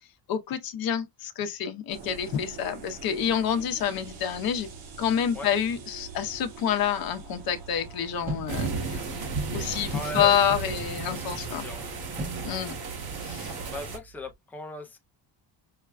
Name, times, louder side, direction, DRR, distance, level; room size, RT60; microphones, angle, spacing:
voice 1, 0.3-4.7 5.0-9.2 9.5-11.6 12.4-12.7 13.2-13.5, left 8 dB, 60° left, 0.8 m, -28 dB
sound 1, 1.9-13.7, right 6 dB, 85° right, 1.4 m, -44 dB
sound 2, 8.3-14.3, right 2 dB, 20° right, 0.8 m, -41 dB
sound 3, 8.5-14.0, right 4 dB, 65° right, 1.4 m, -34 dB
voice 2, 9.9-10.6 11.1-11.9 13.7-15.0, left 2 dB, 5° left, 0.4 m, -38 dB
5.7 x 2.2 x 2.4 m
cardioid pair, 175°, 40 cm